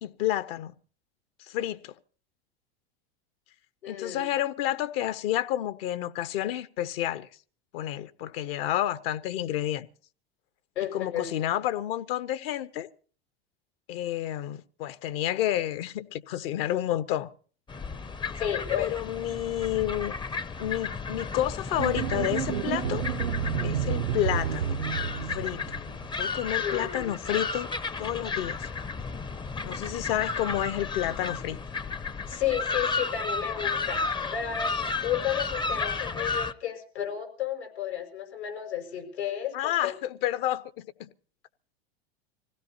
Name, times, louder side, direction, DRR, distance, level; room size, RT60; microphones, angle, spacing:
voice 1, 0.0-0.7 1.5-1.9 3.9-7.3 7.7-9.9 10.9-12.9 13.9-17.3 18.8-20.1 20.6-23.0 23.6-24.8 25.3-25.6 26.2-27.7 28.0-28.7 29.6-31.6 39.5-41.1, left 13 dB, 65° left, 1.2 m, -30 dB
voice 2, 3.8-4.2 10.7-11.3 18.3-18.9 26.6-27.1 32.3-34.0 34.3-39.9, left 10 dB, 90° left, 6.0 m, -32 dB
sound 1, 17.7-36.5, left 4 dB, 15° left, 0.6 m, -33 dB
sound 2, 21.8-26.0, right 9 dB, 90° right, 0.7 m, -30 dB
25.5 x 16.5 x 2.8 m
hypercardioid pair, 100°, 32 cm